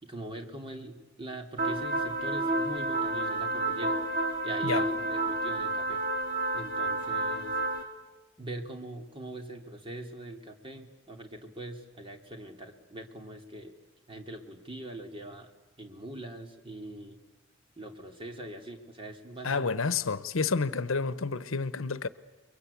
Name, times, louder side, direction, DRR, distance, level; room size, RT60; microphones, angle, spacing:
voice 1, 0.0-4.0 4.4-6.0 6.5-7.6 8.4-13.7 14.1-15.5 15.8-17.2 17.8-19.7, right 1 dB, 25° right, 2.8 m, -42 dB
sound 1, 1.6-7.8, right 2 dB, 45° right, 3.7 m, -30 dB
voice 2, 19.4-22.1, left 4 dB, 80° left, 1.0 m, -29 dB
29.5 x 22.5 x 8.4 m
head